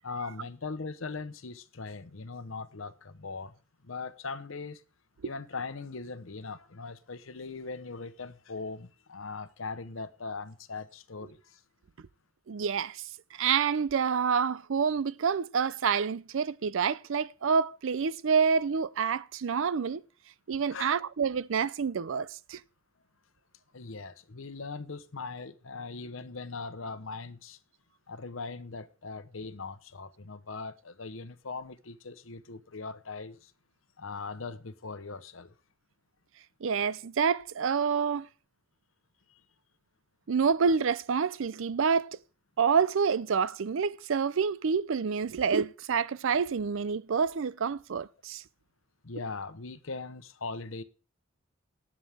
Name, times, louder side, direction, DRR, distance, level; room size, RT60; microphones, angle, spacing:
voice 1, 0.0-3.5 3.8-4.8 5.2-11.6 20.7-20.9 23.7-27.6 28.1-33.5 34.0-35.5 39.3-39.4 49.0-50.8, left 4 dB, 70° left, 0.9 m, -40 dB
voice 2, 12.5-13.0 13.3-20.0 20.5-22.6 36.6-38.3 40.3-42.2 42.6-48.4, right 6 dB, 65° right, 0.5 m, -28 dB
18.5 x 7.3 x 3.5 m
head